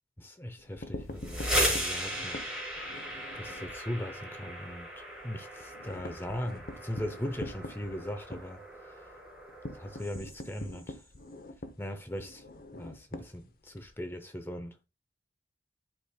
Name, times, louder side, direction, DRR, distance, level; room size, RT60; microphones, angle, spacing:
voice 1, 0.2-2.4 3.3-4.9 5.2-8.6 9.7-11.0 11.8-12.4 12.7-14.8, equal, 10° left, 0.7 m, -39 dB
sound 1, 0.6-3.8 4.2-4.4 4.7-4.8 5.1-13.9, left 2 dB, 50° left, 0.8 m, -44 dB
sound 2, 1.0-10.8, equal, 5° right, 3.9 m, -36 dB
10.5 x 4.9 x 2.3 m
head